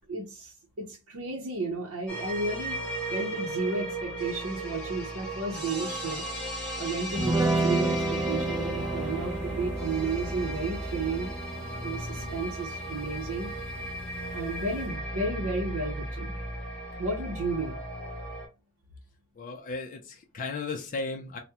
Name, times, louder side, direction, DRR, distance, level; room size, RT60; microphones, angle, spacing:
voice 1, 0.1-2.8 3.1-6.2 6.8-11.3 11.8-13.5 14.3-16.4 17.0-17.8, right 3 dB, 65° right, 0.6 m, -33 dB
sound 1, 2.1-18.5, right 1 dB, 5° left, 1.4 m, -36 dB
sound 2, 7.1-14.9, right 2 dB, 10° right, 0.6 m, -32 dB
voice 2, 19.4-21.4, left 3 dB, 35° left, 0.4 m, -35 dB
3.5 x 2.0 x 2.8 m
head